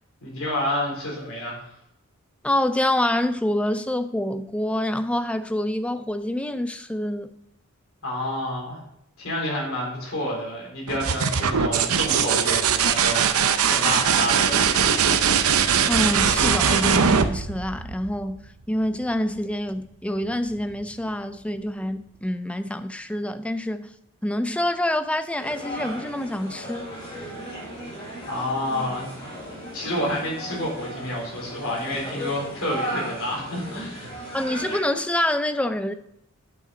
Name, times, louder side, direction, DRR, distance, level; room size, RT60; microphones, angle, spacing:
voice 1, 0.2-1.7 8.0-8.8 9.2-14.9 28.3-29.1 29.6-34.1, left 1 dB, 75° left, 3.9 m, -29 dB
voice 2, 2.4-7.4 15.9-23.9 24.2-26.9 34.3-35.9, left 1 dB, 5° left, 0.3 m, -26 dB
sound 1, 10.9-18.5 20.2-20.8, right 7 dB, 80° right, 0.6 m, -21 dB
sound 2, 25.4-34.8, right 1 dB, 20° left, 3.6 m, -36 dB
9.3 x 5.9 x 4.9 m
head